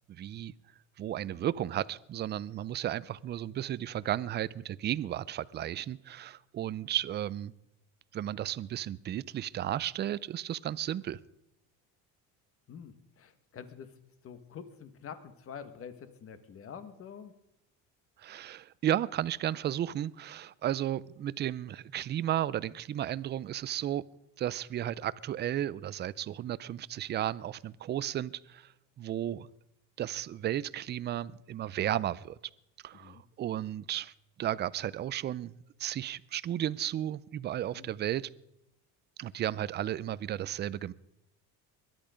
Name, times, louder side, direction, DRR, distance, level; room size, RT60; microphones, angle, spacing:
voice 1, 0.1-0.5 1.0-7.5 8.1-11.2 18.2-24.0 24.4-28.7 29.0-29.5 30.0-32.4 32.8-34.1 34.4-35.5 35.8-38.3 39.2-40.9, right 11 dB, 30° right, 19 dB, 0.5 m, -34 dB
voice 2, 12.7-13.9 14.2-17.3 32.9-33.2 37.7-37.9, left 7 dB, 40° left, 11 dB, 1.7 m, -46 dB
22.0 x 11.0 x 5.1 m, 0.85 s
cardioid pair, 130°, 35 cm